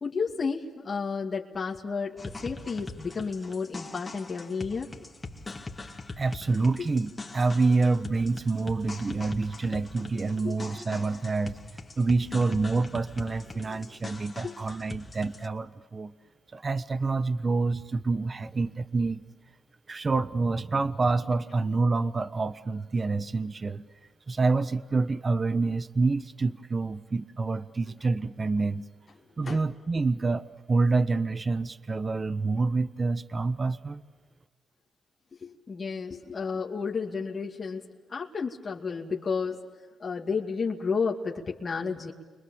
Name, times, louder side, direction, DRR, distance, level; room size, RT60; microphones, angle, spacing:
voice 1, 0.0-4.9 6.8-6.9 10.4-10.6 13.6-14.0 14.4-14.6 29.4-29.6 35.4-39.6 40.0-42.1, left 5 dB, 45° left, -1 dB, 2.4 m, -32 dB
sound 1, 2.2-15.5, left 3 dB, 25° left, 2.6 m, -42 dB
voice 2, 6.2-11.6 12.0-16.1 16.5-19.2 19.9-23.8 24.3-28.8 29.4-34.0, right 3 dB, 35° right, 13 dB, 1.1 m, -27 dB
29.5 x 24.5 x 7.3 m, 1.4 s
cardioid pair, 65°, 0 cm